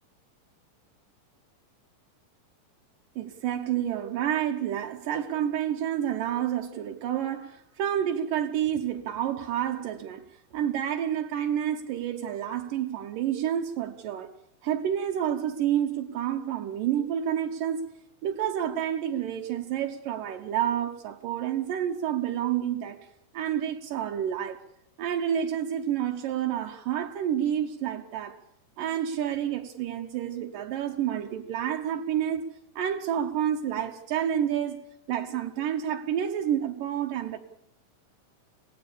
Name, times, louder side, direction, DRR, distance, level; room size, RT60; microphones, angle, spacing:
voice 1, 3.2-10.2 10.5-14.3 14.6-17.9 18.2-23.1 23.3-24.6 25.0-28.4 28.8-32.5 32.8-34.8 35.1-37.4, right 10 dB, 75° right, 2.6 m, -29 dB
26.0 x 18.0 x 7.0 m
omnidirectional pair, 4.0 m